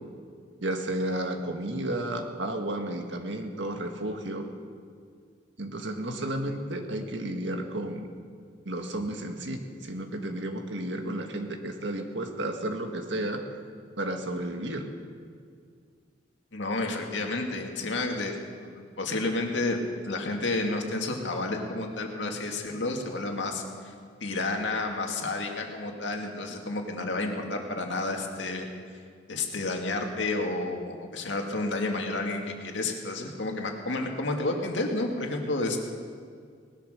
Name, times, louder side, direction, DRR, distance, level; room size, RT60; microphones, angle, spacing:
voice 1, 0.6-4.5 5.6-8.1 8.7-13.4 14.0-14.9, right 1 dB, 80° right, 4 dB, 1.7 m, -32 dB
voice 2, 16.5-18.3 19.0-19.8 20.1-23.9 24.2-28.7 29.3-35.8, left 2 dB, 85° left, 2 dB, 2.1 m, -30 dB
19.0 x 11.5 x 6.6 m, 2.1 s
head